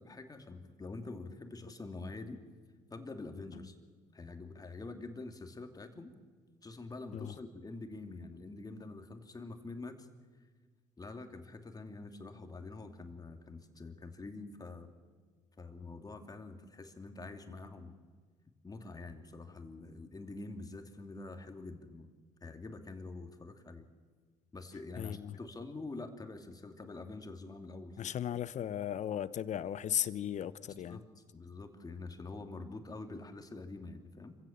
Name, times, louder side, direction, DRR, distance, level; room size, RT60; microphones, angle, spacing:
voice 1, 0.0-2.4 2.9-3.8 4.1-6.1 6.6-10.1 11.0-14.9 15.6-18.0 18.6-22.1 22.4-23.9 24.5-28.1 30.7-34.4, left 3 dB, 25° left, 5 dB, 2.8 m, -46 dB
voice 2, 25.0-25.4 28.0-31.0, left 10 dB, 55° left, 16 dB, 1.0 m, -36 dB
26.0 x 16.0 x 7.4 m, 1.5 s
hypercardioid pair, 65°, 15 cm